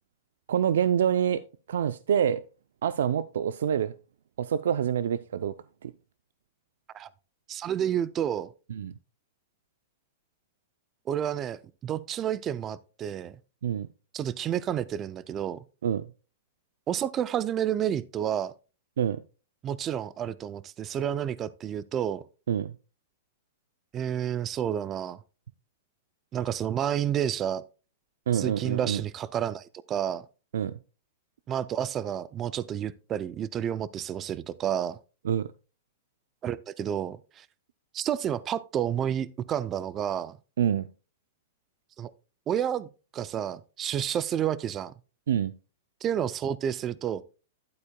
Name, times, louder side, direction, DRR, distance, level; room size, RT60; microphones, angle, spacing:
voice 1, 0.5-1.4 1.7-2.4 2.8-3.9 4.4-5.5 5.8-5.9 8.7-8.9 13.6-13.9 15.8-16.0 19.0-19.2 22.5-22.7 28.3-29.0 30.5-30.7 35.2-35.5 40.6-40.9 45.3-45.5, right 9 dB, 75° right, 0.5 m, -26 dB
voice 2, 7.5-8.5 11.1-13.4 14.1-15.6 16.9-18.5 19.6-22.2 23.9-25.2 26.3-27.6 28.3-30.2 31.5-35.0 36.4-37.5 37.9-40.4 42.0-42.1 42.5-44.9 46.0-47.2, right 9 dB, 20° right, 0.4 m, -30 dB
11.5 x 8.3 x 2.2 m
supercardioid pair, 170°, 0 cm